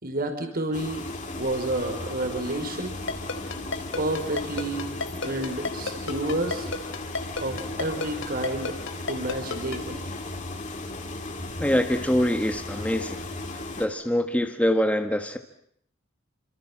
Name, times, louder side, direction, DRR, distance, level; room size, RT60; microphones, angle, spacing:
voice 1, 0.0-1.1 1.4-3.0 4.0-6.7 7.4-8.8 9.1-10.1, right 1 dB, 45° right, 5 dB, 5.3 m, -30 dB
sound 1, 0.7-13.9, left 2 dB, 40° left, 4.4 m, -36 dB
Ringtone, 3.1-9.8, left 4 dB, 65° left, 3.5 m, -30 dB
voice 2, 11.6-13.3 13.8-15.4, equal, 5° left, 6 dB, 1.6 m, -24 dB
29.5 x 26.5 x 7.6 m, 0.69 s
head